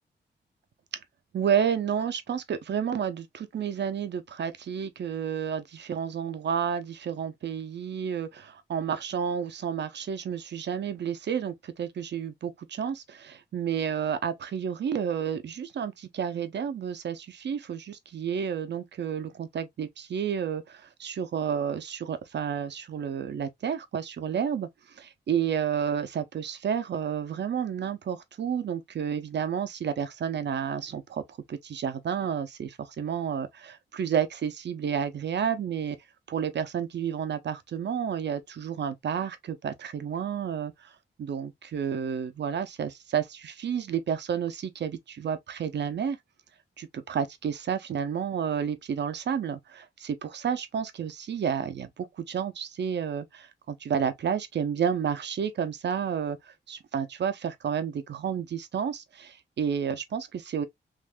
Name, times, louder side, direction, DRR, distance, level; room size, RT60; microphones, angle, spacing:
voice 1, 1.3-24.7 25.0-31.2 31.5-36.0 36.3-40.9 41.2-46.2 46.8-60.7, right 8 dB, 65° right, 0.6 m, -31 dB
3.5 x 2.6 x 2.4 m
cardioid pair, 85°, 19 cm